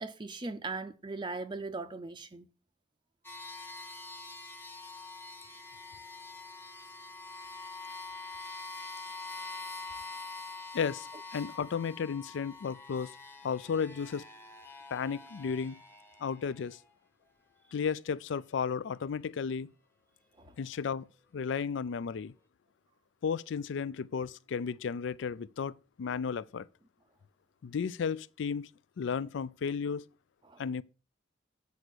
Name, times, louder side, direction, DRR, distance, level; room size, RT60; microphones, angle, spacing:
voice 1, 0.0-2.5 20.4-20.6 30.4-30.6, right 3 dB, 25° right, 0.5 m, -39 dB
sound 1, 3.2-16.9, left 3 dB, 10° left, 0.9 m, -45 dB
voice 2, 10.7-13.1 13.4-14.2 14.9-15.8 16.2-16.8 17.7-19.7 20.6-21.1 21.3-22.3 23.2-26.7 27.6-28.7 29.0-30.0 30.6-30.8, left 6 dB, 70° left, 0.4 m, -34 dB
8.3 x 4.9 x 6.2 m
head